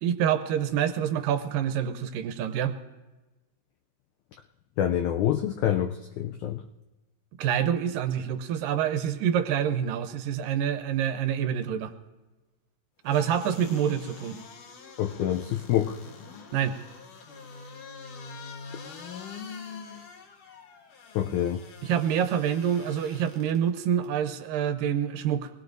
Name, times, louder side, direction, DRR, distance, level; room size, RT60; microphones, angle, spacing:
voice 1, 0.0-2.8 7.4-11.9 13.0-14.4 16.5-16.8 21.8-25.5, right 9 dB, 75° right, 9 dB, 2.3 m, -27 dB
voice 2, 4.8-6.6 15.0-16.0 21.2-21.6, left 11 dB, 90° left, 6 dB, 1.7 m, -26 dB
sound 1, 13.1-23.6 24.0-24.1, left 5 dB, 70° left, 2.8 m, -45 dB
23.5 x 20.0 x 2.6 m, 1.2 s
omnidirectional pair, 4.1 m